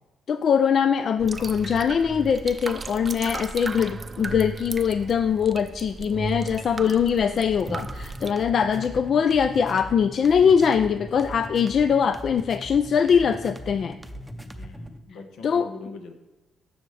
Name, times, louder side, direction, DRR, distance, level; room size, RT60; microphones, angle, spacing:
voice 1, 0.3-14.0 15.4-15.7, left 7 dB, 55° left, 10 dB, 0.3 m, -22 dB
sound 1, 1.2-8.3, right 3 dB, 30° right, 0.5 m, -35 dB
sound 2, 7.4-15.0, equal, ahead, 0.7 m, -40 dB
voice 2, 14.4-16.1, left 4 dB, 80° left, 5 dB, 1.1 m, -43 dB
14.5 x 6.3 x 3.3 m, 1.1 s
cardioid pair, 90°, 0 cm